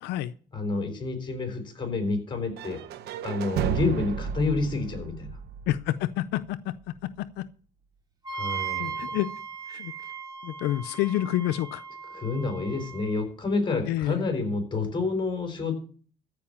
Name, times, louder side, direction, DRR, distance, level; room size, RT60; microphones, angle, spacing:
voice 1, 0.0-0.3 5.7-7.5 8.8-9.3 9.7-9.9 10.4-11.8 13.9-14.3, left 14 dB, 90° left, 0.5 m, -29 dB
voice 2, 0.5-2.8 3.2-5.4 8.3-9.1 12.1-15.7, left 3 dB, 25° left, 4.1 m, -29 dB
sound 1, 2.6-6.5, right 8 dB, 75° right, 1.0 m, -33 dB
Wind instrument woodwind instrument, 8.2-13.2, right 6 dB, 25° right, 2.5 m, -37 dB
14.5 x 5.2 x 8.6 m
cardioid pair, 110°, 17 cm